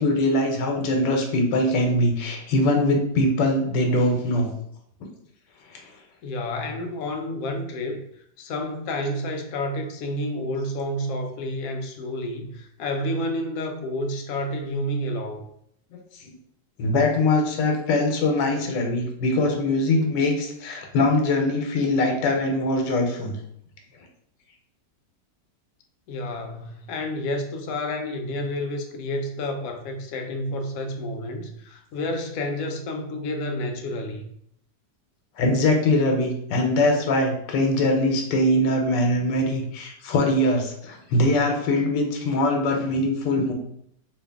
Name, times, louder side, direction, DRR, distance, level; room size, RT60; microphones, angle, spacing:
voice 1, 0.0-4.5 5.7-5.8 16.1-16.3 16.8-23.4 35.4-43.5, left 1 dB, 85° left, 2 dB, 1.3 m, -22 dB
voice 2, 6.2-8.0 8.4-15.5 26.1-34.2, left 1 dB, 70° left, 5 dB, 0.8 m, -30 dB
3.0 x 2.7 x 3.4 m, 0.70 s
omnidirectional pair, 1.8 m